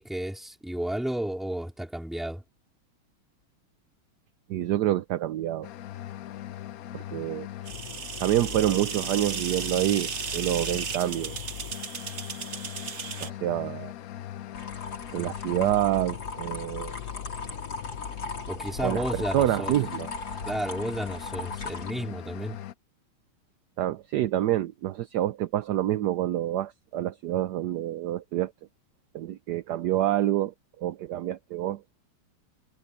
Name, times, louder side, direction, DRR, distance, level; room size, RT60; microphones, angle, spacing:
voice 1, 0.0-2.4 18.5-19.7 20.4-22.6, right 1 dB, ahead, 2.3 m, -32 dB
voice 2, 4.5-5.7 6.9-7.5 8.2-11.4 13.2-13.9 15.1-17.0 18.8-20.1 23.8-28.5 29.1-31.8, right 13 dB, 70° right, 1.0 m, -27 dB
sound 1, 5.6-22.7, left 12 dB, 80° left, 0.8 m, -40 dB
sound 2, 7.7-13.3, right 6 dB, 40° right, 1.1 m, -35 dB
sound 3, 14.5-21.9, left 3 dB, 60° left, 4.9 m, -38 dB
omnidirectional pair, 2.3 m